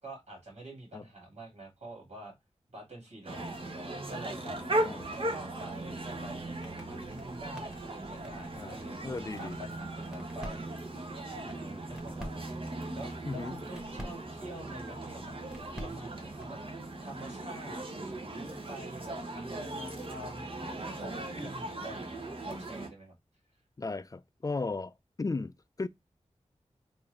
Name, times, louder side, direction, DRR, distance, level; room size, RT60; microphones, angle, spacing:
voice 1, 0.0-2.3 2.7-4.6 5.2-9.0 9.4-10.7 11.4-15.4 15.8-16.6 17.0-23.1, right 1 dB, 65° right, 2.0 m, -47 dB
sound 1, 3.3-22.9, right 1 dB, 50° right, 0.9 m, -38 dB
voice 2, 4.5-5.1 8.6-8.8 9.0-9.6 13.2-13.6 23.8-25.9, left 3 dB, 30° left, 0.4 m, -36 dB
sound 2, 5.8-16.6, equal, 5° right, 1.5 m, -50 dB
3.5 x 2.7 x 3.1 m
wide cardioid pair, 55°, 12 cm